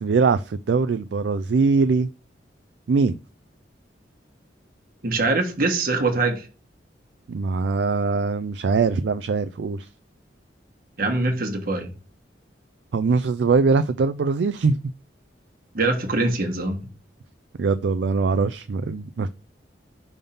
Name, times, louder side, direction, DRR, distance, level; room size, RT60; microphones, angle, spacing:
voice 1, 0.0-2.1 2.9-3.2 7.3-9.9 12.9-14.8 17.6-19.3, right 4 dB, 70° right, 0.4 m, -22 dB
voice 2, 5.0-6.5 11.0-11.9 15.7-16.8, right 3 dB, 55° right, 1.3 m, -23 dB
5.4 x 3.5 x 5.5 m
head